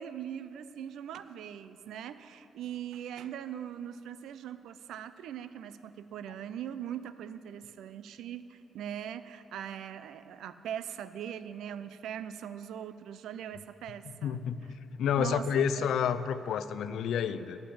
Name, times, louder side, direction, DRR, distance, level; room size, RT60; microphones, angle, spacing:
voice 1, 0.0-14.7 15.1-15.9, right 9 dB, 85° right, 13 dB, 0.4 m, -41 dB
voice 2, 14.2-14.7 15.0-17.6, left 7 dB, 70° left, 12 dB, 0.4 m, -29 dB
11.5 x 6.6 x 8.5 m, 3.0 s
cardioid pair, 175°, 0 cm